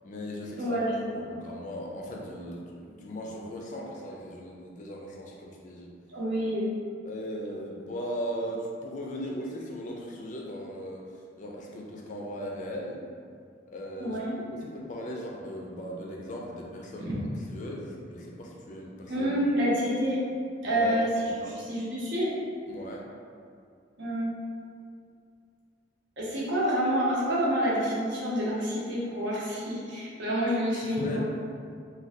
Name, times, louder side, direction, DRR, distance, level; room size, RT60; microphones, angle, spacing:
voice 1, 0.0-0.8 1.1-5.9 7.1-11.0 11.4-13.0 13.7-17.1 17.5-19.3 20.6-21.0 21.3-21.5 22.7-23.1 30.7-31.2, equal, 40° left, -1 dB, 0.4 m, -38 dB
voice 2, 0.6-1.3 6.1-6.7 14.0-14.4 17.0-17.1 19.1-20.2 20.6-21.3 21.7-22.3 24.0-24.3 26.2-31.2, equal, 75° right, -6 dB, 0.8 m, -28 dB
2.6 x 2.2 x 3.4 m, 2.3 s
head